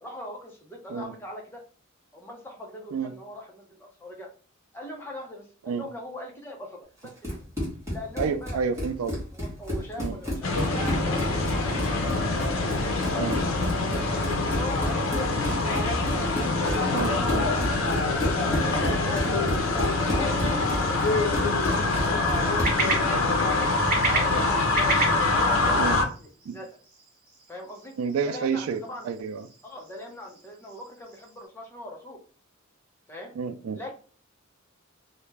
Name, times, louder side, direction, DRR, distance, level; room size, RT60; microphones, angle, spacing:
voice 1, 0.0-1.6 2.1-4.3 4.7-7.1 7.9-8.7 9.3-12.0 12.5-15.8 16.4-17.9 18.4-19.2 20.0-21.0 21.3-22.8 23.2-23.5 24.1-24.7 25.0-26.3 26.5-26.7 27.5-27.9 28.2-29.1 29.6-32.2 33.1-33.3 33.7-33.9, left 1 dB, 10° left, 0 dB, 0.5 m, -40 dB
Run, 7.0-22.9, left 1 dB, 15° right, 1.0 m, -32 dB
voice 2, 8.2-9.2 10.0-10.2 13.1-13.4 15.7-15.9 16.9-17.4 19.2-19.4 25.8-26.0 26.5-26.6 28.0-28.8 29.0-29.5 33.4-33.8, right 6 dB, 85° right, 10 dB, 0.3 m, -30 dB
sound 1, 10.4-26.1, left 2 dB, 75° left, 0.5 m, -25 dB
sound 2, 19.8-31.5, right 3 dB, 45° right, 0.9 m, -35 dB
2.3 x 2.1 x 3.2 m, 0.40 s
head